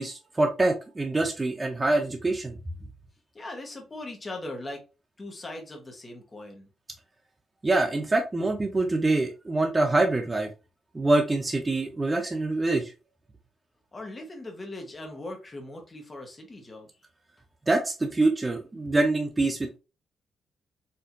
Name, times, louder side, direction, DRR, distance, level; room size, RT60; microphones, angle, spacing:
voice 1, 0.0-2.5 7.6-10.5 10.9-12.9 17.7-19.8, right 2 dB, 15° right, 0.4 m, -25 dB
voice 2, 3.3-4.8 5.2-6.7 13.9-16.9, left 2 dB, 20° left, 1.0 m, -39 dB
4.3 x 2.6 x 2.5 m
cardioid pair, 160°, 0 cm